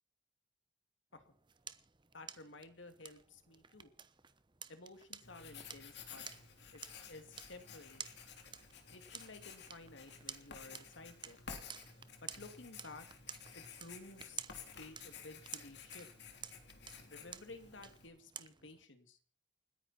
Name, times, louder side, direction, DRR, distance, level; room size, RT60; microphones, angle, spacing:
sound 1, 1.1-18.8, right 7 dB, 25° right, 1.0 m, -53 dB
voice 1, 2.1-3.9 4.7-6.2 6.7-6.8 7.1-8.0 8.9-11.4 12.2-13.1 13.5-14.4 14.8-16.1 17.1-19.2, left 2 dB, 80° left, 8 dB, 2.5 m, -54 dB
Writing, 5.2-18.1, left 6 dB, 60° left, 3.4 m, -53 dB
29.5 x 10.0 x 4.4 m, 0.41 s
head